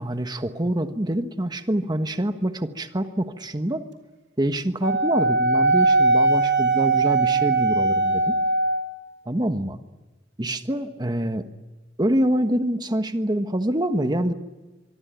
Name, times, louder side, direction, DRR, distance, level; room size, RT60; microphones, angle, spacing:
voice 1, 0.0-3.9 4.4-8.3 9.2-9.8 10.4-11.4 12.0-14.3, right 1 dB, 25° right, 8 dB, 1.4 m, -25 dB
Wind instrument woodwind instrument, 4.8-9.0, right 3 dB, 70° right, 3.3 m, -20 dB
24.5 x 24.5 x 9.3 m, 1.2 s
head